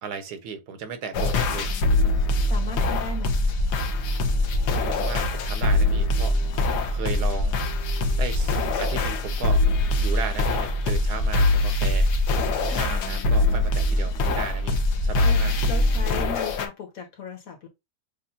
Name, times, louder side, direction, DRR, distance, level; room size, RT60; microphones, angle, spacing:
voice 1, 0.0-1.7 4.9-7.6 8.2-9.6 10.0-12.3 12.6-15.5, right 5 dB, 85° right, 1.4 m, -35 dB
sound 1, 1.1-16.7, left 2 dB, 90° left, 1.4 m, -23 dB
voice 2, 2.5-3.4 15.2-17.7, left 4 dB, 60° left, 1.7 m, -36 dB
6.9 x 2.5 x 2.7 m
omnidirectional pair, 1.7 m